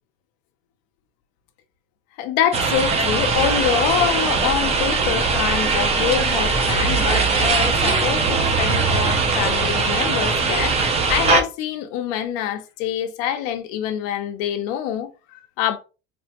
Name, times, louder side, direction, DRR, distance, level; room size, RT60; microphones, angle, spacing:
voice 1, 2.2-15.8, left 10 dB, 75° left, 0.6 m, -25 dB
sound 1, 2.5-11.4, right 4 dB, 20° right, 0.4 m, -20 dB
3.3 x 2.1 x 2.8 m
cardioid pair, 150°, 30 cm